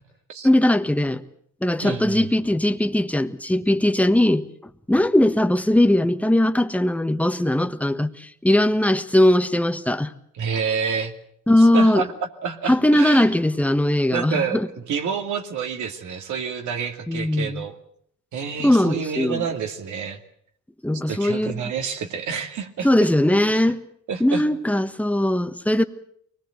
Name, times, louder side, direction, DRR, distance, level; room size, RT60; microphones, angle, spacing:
voice 1, 0.4-1.2 1.6-4.5 4.9-10.1 11.5-12.0 12.7-14.7 17.1-17.6 18.6-19.4 20.8-21.6 22.8-23.8 24.2-25.8, left 1 dB, 5° left, 1.4 m, -19 dB
voice 2, 1.8-2.3 10.3-11.2 11.6-12.1 12.4-13.3 14.1-17.8 18.3-20.2 21.1-23.1 23.5-23.7 24.1-24.4, right 6 dB, 75° right, 2.5 m, -28 dB
24.0 x 20.0 x 8.0 m
cardioid pair, 90°, 30 cm